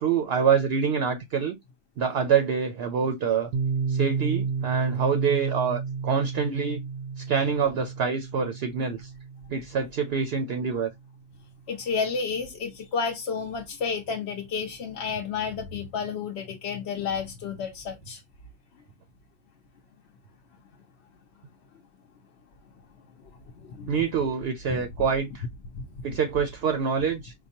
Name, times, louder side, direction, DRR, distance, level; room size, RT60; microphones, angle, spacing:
voice 1, 0.0-1.6 2.0-3.5 3.9-6.8 7.2-9.1 9.5-10.9 23.9-25.5 26.0-27.3, right 6 dB, 60° right, 0.7 m, -26 dB
Piano, 3.5-11.0, right 5 dB, 85° right, 1.0 m, -32 dB
voice 2, 11.7-18.2 23.5-23.9 24.7-24.9 25.8-25.9, left 5 dB, 65° left, 0.8 m, -31 dB
4.6 x 2.2 x 2.7 m
omnidirectional pair, 1.3 m